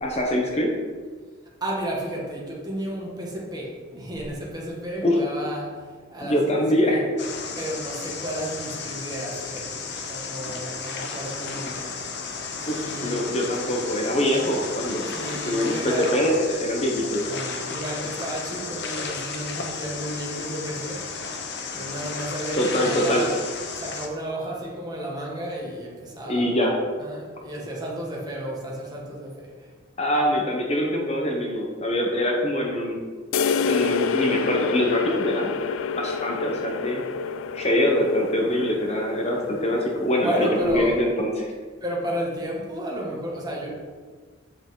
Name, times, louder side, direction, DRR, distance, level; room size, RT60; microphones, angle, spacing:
voice 1, 0.0-0.7 5.0-5.2 6.2-7.1 12.7-15.0 15.5-17.3 22.6-23.3 26.3-26.8 30.0-33.0 33.6-35.5 35.9-37.1 37.5-41.5, left 1 dB, 35° left, 0 dB, 1.0 m, -24 dB
voice 2, 1.6-5.8 6.1-7.0 7.6-11.9 12.5-13.2 15.0-16.1 17.3-21.0 21.7-23.4 23.7-26.5 27.0-29.7 40.2-41.0 41.8-43.7, right 1 dB, 20° right, -3 dB, 1.7 m, -32 dB
sound 1, 7.2-24.1, left 4 dB, 60° left, 0.9 m, -33 dB
sound 2, 33.3-40.9, left 6 dB, 80° left, 0.4 m, -28 dB
7.9 x 6.7 x 3.8 m, 1.5 s
head